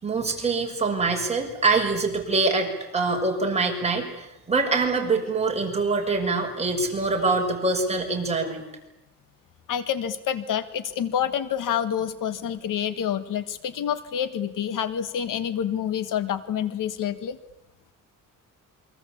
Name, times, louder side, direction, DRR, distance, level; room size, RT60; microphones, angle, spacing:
voice 1, 0.0-8.6, right 3 dB, 20° right, 0 dB, 6.5 m, -24 dB
voice 2, 9.7-17.4, left 9 dB, 65° left, 12 dB, 1.6 m, -28 dB
28.0 x 24.0 x 8.5 m, 0.91 s
cardioid pair, 140°, 34 cm